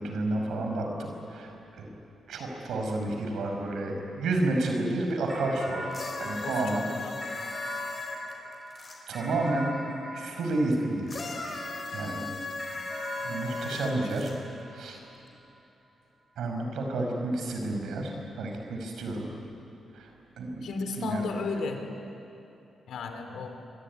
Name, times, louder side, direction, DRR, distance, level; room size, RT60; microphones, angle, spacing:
voice 1, 0.0-1.9 2.3-5.8 6.2-6.8 9.1-9.7 10.1-11.1 11.9-12.3 13.2-14.3 14.7-15.0 16.4-19.3 19.9-20.1 20.4-20.7 21.0-21.3, right 2 dB, 85° right, 2 dB, 5.3 m, -30 dB
sound 1, 5.3-11.9 12.6-15.3, equal, 10° right, 5.9 m, -41 dB
sound 2, 5.9-9.0 11.1-14.3 15.3-15.4, left 3 dB, 30° left, 4.3 m, -37 dB
voice 2, 6.4-7.2 13.7-13.8 20.6-21.8 22.9-23.6, left 3 dB, 70° left, 5 dB, 3.4 m, -34 dB
25.0 x 23.0 x 9.8 m, 2.9 s
wide cardioid pair, 165°, 0 cm